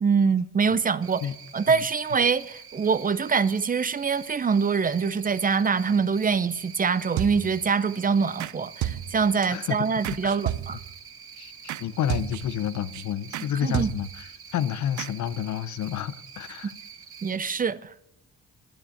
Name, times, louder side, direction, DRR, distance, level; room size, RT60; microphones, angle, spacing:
voice 1, 0.0-1.2 1.5-10.8 13.6-13.9 17.2-17.9, right 5 dB, 30° right, 0.6 m, -24 dB
Cricket, 1.0-17.4, right 7 dB, 45° right, 1.4 m, -46 dB
sound 1, 7.2-7.7 8.4-8.5 8.8-9.5 10.0-11.0 11.7-11.8 12.1-12.6 12.9-13.0 13.3-13.5 13.7-14.3 15.0-15.1, right 13 dB, 75° right, 0.6 m, -32 dB
voice 2, 9.5-10.4 11.3-16.7, left 10 dB, 70° left, 0.7 m, -30 dB
12.0 x 9.6 x 6.5 m
cardioid pair, 90°, 30 cm